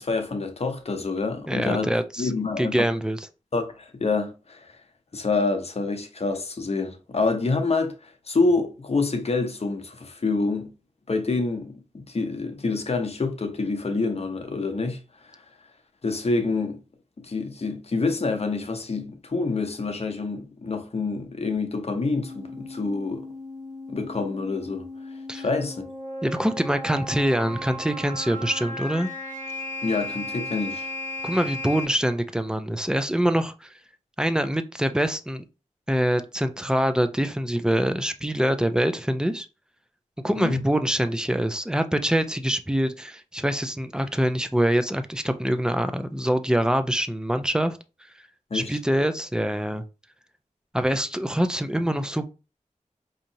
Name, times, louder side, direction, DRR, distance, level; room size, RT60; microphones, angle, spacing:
voice 1, 0.0-1.9 2.2-2.9 3.5-4.7 5.1-10.7 11.1-15.0 15.3-15.4 16.0-16.8 17.2-23.3 23.9-24.9 25.3-25.8 29.8-30.9 40.4-40.6 48.5-48.7, left 3 dB, 50° left, 0.8 m, -27 dB
voice 2, 1.5-2.3 2.6-3.3 25.3-25.4 26.2-29.1 31.2-33.7 34.2-35.4 35.9-39.5 40.2-47.8 48.5-49.8 50.7-52.2, equal, 5° right, 0.5 m, -24 dB
sound 1, 22.2-31.8, left 1 dB, 85° right, 1.4 m, -36 dB
4.9 x 2.8 x 2.7 m
wide cardioid pair, 70°, 13 cm